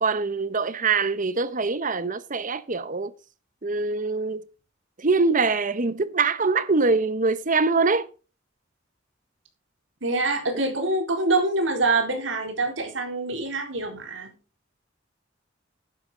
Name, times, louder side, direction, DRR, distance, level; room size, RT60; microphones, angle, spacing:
voice 1, 0.0-3.1 3.6-4.4 5.0-8.1, right 4 dB, 45° right, 1.0 m, -23 dB
voice 2, 10.0-14.3, right 2 dB, 80° right, 4.2 m, -25 dB
12.0 x 10.5 x 3.8 m
head